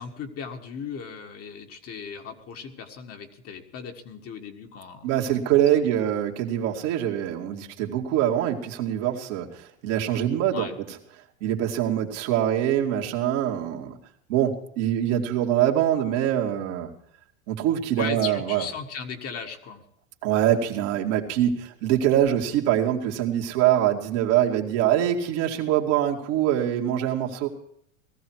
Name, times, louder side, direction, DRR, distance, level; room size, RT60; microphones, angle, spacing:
voice 1, 0.0-5.1 5.5-6.1 10.5-10.7 18.0-19.8, left 6 dB, 35° left, 4 dB, 1.7 m, -37 dB
voice 2, 5.0-10.7 11.4-14.0 14.3-16.9 17.5-18.6 20.2-27.5, right 11 dB, 60° right, 1 dB, 2.3 m, -24 dB
18.5 x 14.0 x 4.7 m, 0.69 s
hypercardioid pair, 110°, 40 cm